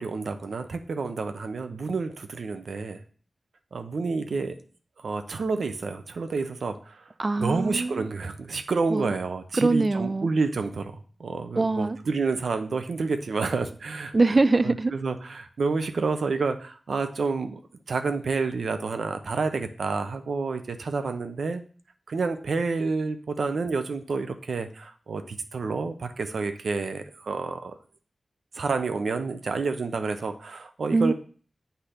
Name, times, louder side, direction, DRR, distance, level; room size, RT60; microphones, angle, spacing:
voice 1, 0.0-3.0 3.7-4.6 5.0-7.1 7.4-14.1 14.6-17.6 17.9-21.6 22.1-27.7 28.5-31.1, right 4 dB, 90° right, 0.6 m, -29 dB
voice 2, 7.2-8.0 8.9-9.1 9.6-10.3 11.6-12.0 14.1-14.9 30.9-31.1, right 3 dB, 35° right, 0.4 m, -23 dB
8.1 x 2.8 x 5.0 m
wide cardioid pair, 85°, 0 cm